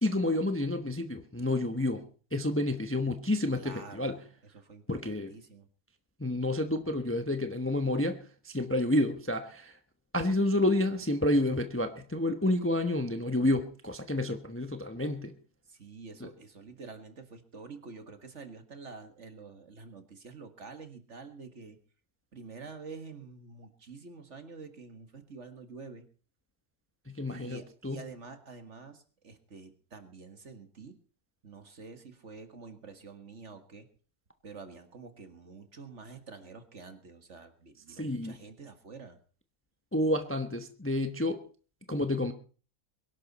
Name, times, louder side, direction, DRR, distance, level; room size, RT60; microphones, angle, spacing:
voice 1, 0.0-2.0 2.3-4.2 4.9-5.3 6.2-9.8 10.1-15.3 16.2-16.3 27.1-28.0 37.9-38.4 39.9-41.5 41.9-42.3, left 1 dB, 10° left, 0.9 m, -29 dB
voice 2, 3.5-4.2 4.5-5.7 15.7-21.8 22.3-26.1 27.3-31.0 31.4-33.9 34.4-39.2, right 4 dB, 50° right, 2.0 m, -48 dB
22.5 x 11.5 x 4.2 m
omnidirectional pair, 1.6 m